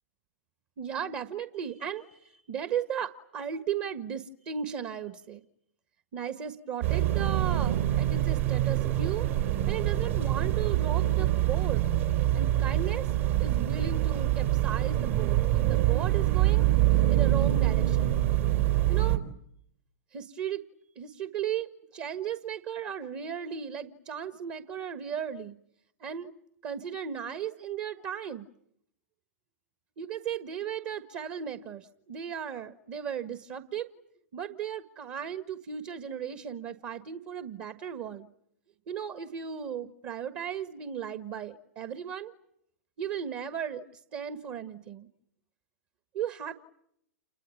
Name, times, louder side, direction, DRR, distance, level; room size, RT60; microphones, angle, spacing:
voice 1, 0.8-5.4 6.1-9.3 9.7-11.9 12.3-13.1 13.4-16.6 17.1-18.2 18.9-19.2 20.1-20.6 20.9-25.6 26.0-26.3 26.6-28.5 30.0-33.9 34.3-38.3 38.9-42.3 43.0-45.1 46.1-46.5, right 8 dB, 40° right, 11 dB, 1.6 m, -36 dB
sound 1, 6.8-19.2, right 14 dB, 55° right, 3.4 m, -25 dB
29.5 x 22.0 x 9.3 m, 0.73 s
figure-of-eight pair, 105°, 8 cm